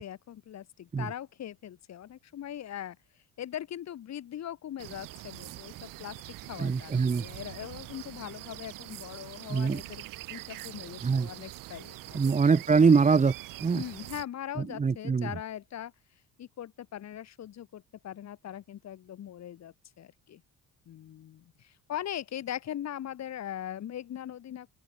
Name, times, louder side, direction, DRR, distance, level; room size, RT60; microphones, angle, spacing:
voice 1, 0.0-3.0 3.4-12.3 13.7-15.9 16.4-20.4 20.9-24.7, left 11 dB, 55° left, 5.4 m, -40 dB
sound 1, 4.8-14.3, right 17 dB, 80° right, 2.8 m, -44 dB
voice 2, 6.6-7.3 9.5-9.8 11.0-11.3 12.1-13.3 13.6-13.8 14.6-15.3, right 5 dB, 20° right, 1.3 m, -23 dB
open air
cardioid pair, 120°, 32 cm